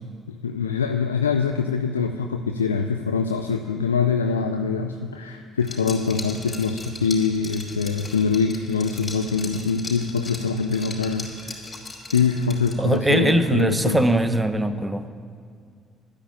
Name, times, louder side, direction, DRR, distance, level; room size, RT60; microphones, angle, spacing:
voice 1, 0.4-11.6 12.1-14.0, left 5 dB, 90° left, 6 dB, 0.4 m, -24 dB
Liquid, 5.6-13.0, left 3 dB, 30° left, 4.2 m, -38 dB
voice 2, 12.8-15.1, right 1 dB, 10° right, 10 dB, 1.1 m, -21 dB
11.5 x 9.9 x 8.6 m, 2.2 s
hypercardioid pair, 50°, 0 cm